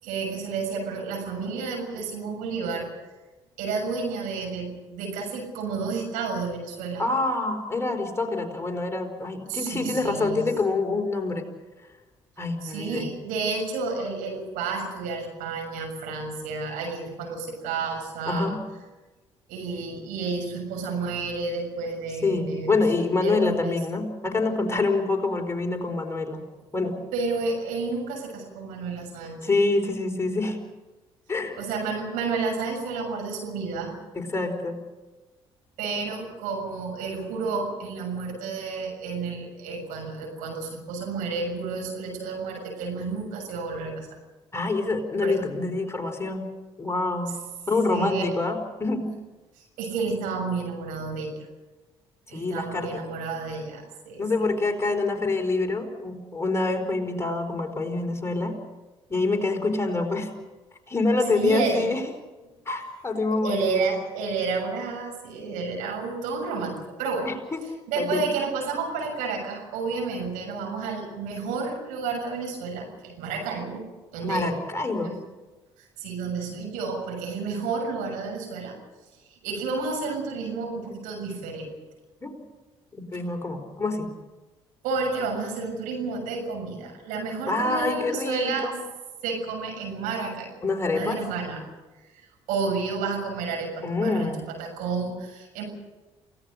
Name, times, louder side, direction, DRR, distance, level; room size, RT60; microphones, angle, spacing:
voice 1, 0.0-2.9 3.6-7.1 9.5-10.5 12.6-18.6 19.5-22.7 23.0-23.7 27.1-29.4 31.6-33.9 35.8-44.1 45.2-45.4 47.9-48.4 49.6-51.5 52.3-54.5 61.3-62.0 63.4-67.3 67.9-73.8 74.1-74.4 75.0-75.1 75.8-78.8 79.4-81.7 84.8-88.7 89.2-90.5 90.9-91.6 92.2-95.7, right 4 dB, 70° right, 2 dB, 6.8 m, -31 dB
voice 2, 7.0-11.5 12.4-13.1 18.3-18.6 22.2-26.4 26.7-27.0 29.4-30.6 31.3-31.6 34.1-34.8 44.5-46.4 46.8-47.3 47.7-49.0 52.3-53.1 54.2-58.6 59.1-60.3 60.9-62.0 62.6-63.9 67.2-67.6 68.0-68.3 74.2-75.2 82.2-82.4 83.0-84.1 87.5-88.7 90.6-91.2 93.8-94.4, left 3 dB, 20° left, 3 dB, 4.6 m, -26 dB
29.0 x 17.5 x 6.6 m, 1.2 s
hypercardioid pair, 55°, 14 cm